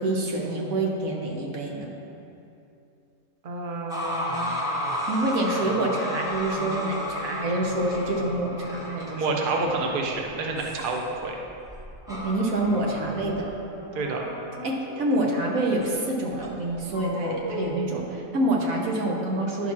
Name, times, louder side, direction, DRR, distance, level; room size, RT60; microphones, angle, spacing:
voice 1, 0.0-1.9 5.1-9.4 12.1-13.5 14.6-19.7, right 1 dB, 90° right, -1 dB, 1.6 m, -27 dB
voice 2, 3.4-4.6 9.0-11.4 13.9-14.2, right 3 dB, 45° right, 1 dB, 0.9 m, -29 dB
sound 1, 3.9-15.4 15.8-15.9 16.4-18.3, equal, 5° right, 1.4 m, -34 dB
11.0 x 4.0 x 5.9 m, 2.7 s
omnidirectional pair, 1.4 m